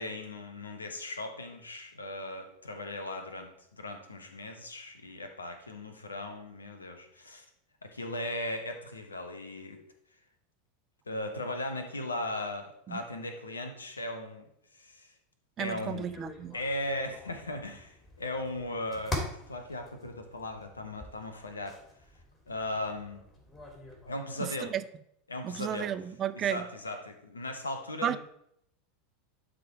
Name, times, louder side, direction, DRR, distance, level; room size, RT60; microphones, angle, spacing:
voice 1, 0.0-7.4 7.8-9.8 11.1-14.4 14.7-15.1 15.6-16.0 16.5-21.8 22.5-23.2 24.0-24.7 25.3-25.9 26.3-28.2, left 1 dB, 80° left, 1.1 m, -37 dB
voice 2, 15.6-16.6 24.4-24.8 25.4-26.7 28.0-28.2, right 10 dB, 35° right, 0.5 m, -33 dB
sound 1, 15.9-24.1, left 2 dB, 25° left, 2.7 m, -44 dB
11.5 x 3.9 x 4.8 m
figure-of-eight pair, 85°, 0 cm